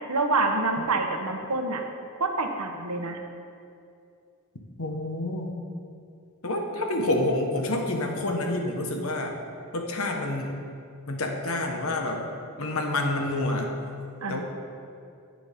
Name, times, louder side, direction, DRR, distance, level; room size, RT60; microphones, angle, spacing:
voice 1, 0.1-1.8 2.2-3.2 14.2-14.4, right 3 dB, 90° right, 4 dB, 1.0 m, -26 dB
voice 2, 4.8-5.5 6.4-9.3 9.7-10.5 11.1-12.2 12.6-13.7 14.3-14.4, left 2 dB, 75° left, 2 dB, 1.3 m, -28 dB
11.0 x 9.1 x 3.6 m, 2.5 s
head